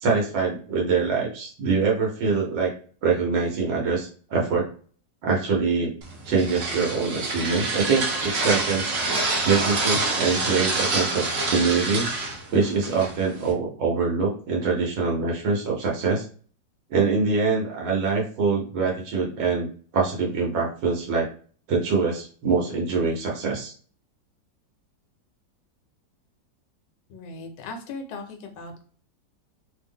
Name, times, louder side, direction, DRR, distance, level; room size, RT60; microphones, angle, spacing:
voice 1, 0.0-2.7 3.0-4.7 5.2-5.9 6.2-9.0 9.4-11.2 11.5-12.1 12.5-16.2 16.9-19.7 19.9-21.3 21.7-23.7, right 4 dB, 85° right, -3 dB, 1.5 m, -24 dB
sound 1, 6.0-13.5, right 3 dB, 70° right, 0.6 m, -27 dB
voice 2, 27.1-28.8, left 3 dB, 75° left, 4 dB, 1.2 m, -38 dB
3.3 x 2.0 x 3.5 m, 0.44 s
omnidirectional pair, 2.0 m